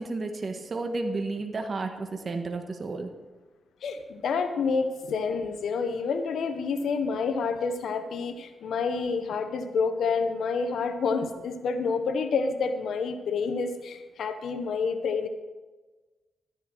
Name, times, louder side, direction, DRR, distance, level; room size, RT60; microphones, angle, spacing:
voice 1, 0.0-3.1, right 3 dB, 45° right, 5 dB, 1.5 m, -32 dB
voice 2, 3.8-15.3, left 5 dB, 80° left, 8 dB, 1.1 m, -28 dB
13.0 x 10.0 x 4.7 m, 1.2 s
cardioid pair, 75°, 0 cm